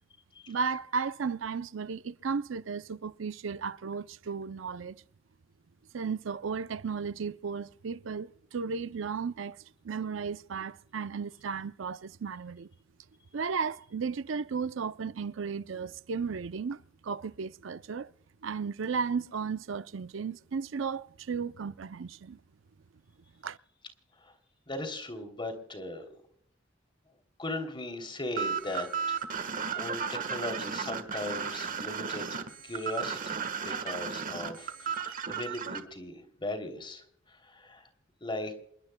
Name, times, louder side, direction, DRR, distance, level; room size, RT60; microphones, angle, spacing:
voice 1, 0.5-5.0 5.9-9.6 9.8-12.7 13.3-18.1 18.4-22.4 23.4-23.6, right 5 dB, 75° right, 0.5 m, -34 dB
voice 2, 24.7-26.1 27.4-37.9 38.2-38.5, left 2 dB, 25° left, 3.0 m, -38 dB
sound 1, 28.4-35.8, right 6 dB, 45° right, 1.4 m, -34 dB
28.5 x 21.0 x 2.2 m
head